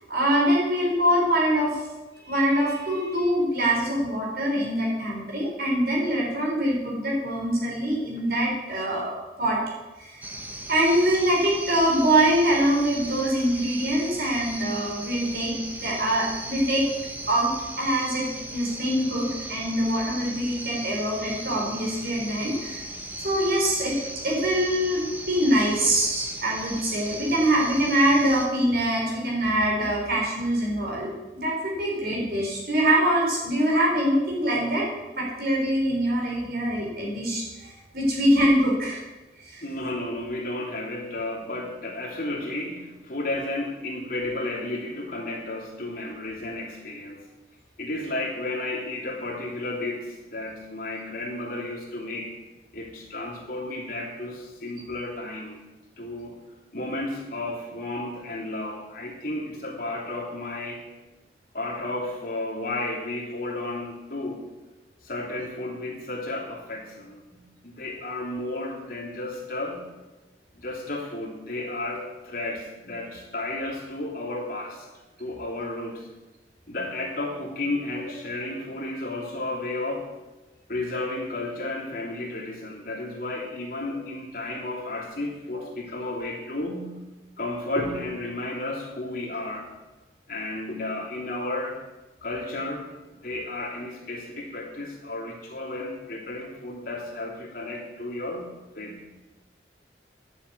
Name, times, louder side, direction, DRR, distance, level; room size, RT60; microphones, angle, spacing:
voice 1, 0.1-1.8 2.2-9.6 10.0-10.3 10.7-16.9 17.3-22.8 23.2-31.1 31.4-34.9 35.2-39.0 39.4-39.6 85.5-85.6, right 1 dB, 55° right, -3 dB, 4.3 m, -24 dB
sound 1, 10.2-28.5, right 1 dB, 10° right, 1.1 m, -37 dB
voice 2, 39.6-47.2 47.8-52.3 52.7-55.6 56.0-56.4 56.7-60.8 61.5-64.4 65.0-69.9 70.5-74.9 75.2-76.1 76.7-80.1 80.7-87.0 87.4-89.7 90.3-91.8 92.2-99.0, left 2 dB, 50° left, -3 dB, 3.1 m, -33 dB
10.5 x 7.6 x 8.4 m, 1.1 s
head